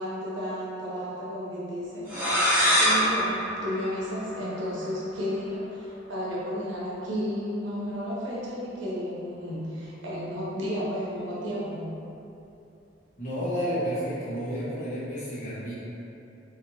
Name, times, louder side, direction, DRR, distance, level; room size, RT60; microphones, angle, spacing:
voice 1, 0.0-2.5 2.8-11.8, equal, 90° right, -7 dB, 0.9 m, -33 dB
sound 1, 2.1-4.7, equal, 10° right, 0.8 m, -25 dB
voice 2, 13.2-15.7, equal, 40° left, -11 dB, 1.1 m, -31 dB
3.1 x 3.0 x 2.7 m, 2.8 s
head